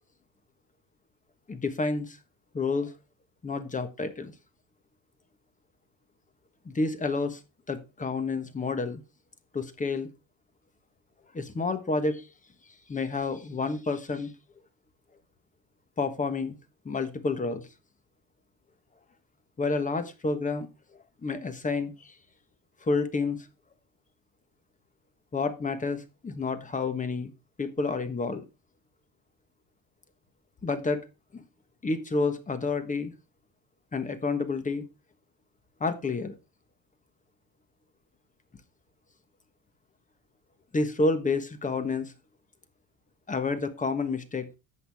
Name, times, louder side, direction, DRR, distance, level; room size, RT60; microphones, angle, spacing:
voice 1, 1.5-2.2 2.5-2.9 3.4-4.3 6.6-7.4 7.7-9.0 9.5-10.1 11.3-12.3 12.9-14.3 16.0-16.6 16.8-17.7 19.6-20.7 21.2-22.1 22.8-23.4 25.3-27.3 27.6-28.4 30.6-31.0 31.3-31.4 31.8-33.1 33.9-34.9 35.8-36.3 40.7-42.1 43.3-44.5, left 3 dB, 15° left, 10 dB, 1.3 m, -29 dB
11.0 x 8.2 x 3.5 m, 0.27 s
cardioid pair, 155°, 46 cm